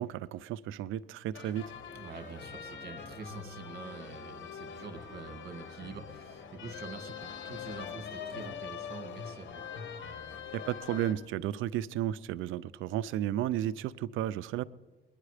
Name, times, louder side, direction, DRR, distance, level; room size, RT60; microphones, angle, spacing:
voice 1, 0.0-1.7 10.5-14.7, right 12 dB, 85° right, 0.5 m, -33 dB
sound 1, 1.3-11.1, left 7 dB, 75° left, 1.6 m, -43 dB
voice 2, 1.9-9.6, right 4 dB, 50° right, 1.9 m, -46 dB
21.5 x 10.5 x 4.9 m
cardioid pair, 90°, 20 cm